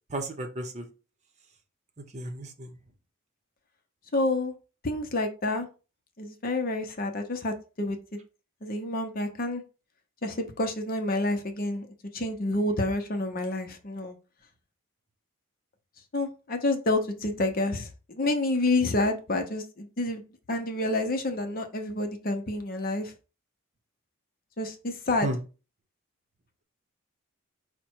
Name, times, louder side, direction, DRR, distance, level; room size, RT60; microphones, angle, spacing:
voice 1, 0.1-0.8 2.1-2.7 25.2-25.4, right 1 dB, 35° right, 4 dB, 0.7 m, -33 dB
voice 2, 4.1-4.5 4.8-5.7 6.2-8.0 8.6-9.6 10.2-11.9 12.1-14.1 16.1-23.1 24.6-25.3, left 2 dB, 45° left, 5 dB, 0.7 m, -28 dB
5.2 x 2.2 x 4.5 m, 0.33 s
head